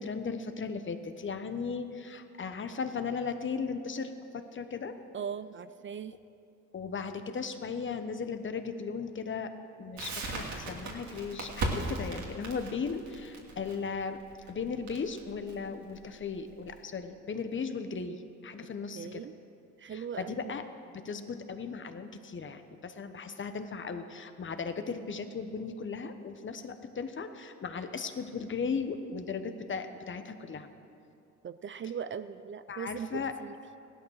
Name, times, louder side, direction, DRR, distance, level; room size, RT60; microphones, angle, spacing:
voice 1, 0.0-4.9 6.7-9.5 9.8-14.2 14.5-19.3 19.9-20.7 20.9-30.7 32.7-33.3, left 5 dB, 40° left, 8 dB, 1.1 m, -37 dB
voice 2, 5.1-6.1 18.9-19.3 19.8-20.5 31.4-33.5, right 7 dB, 40° right, 13 dB, 0.5 m, -39 dB
Crackle, 10.0-16.8, right 2 dB, 70° right, 2.7 m, -37 dB
16.0 x 12.0 x 6.5 m, 2.6 s
cardioid pair, 90°, 30 cm